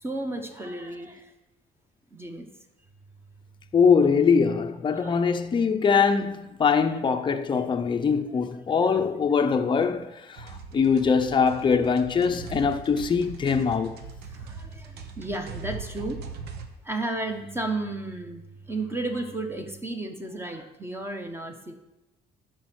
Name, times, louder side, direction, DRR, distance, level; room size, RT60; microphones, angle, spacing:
voice 1, 0.0-1.3 2.1-2.5 4.9-5.2 6.9-7.0 7.5-7.6 12.4-12.6 14.3-16.2 16.8-21.7, right 2 dB, 15° right, 1.2 m, -33 dB
voice 2, 3.7-14.0, left 5 dB, 30° left, 0.7 m, -22 dB
sound 1, 10.4-16.7, right 5 dB, 75° right, 1.0 m, -40 dB
11.0 x 4.6 x 6.2 m
cardioid pair, 110°, 17 cm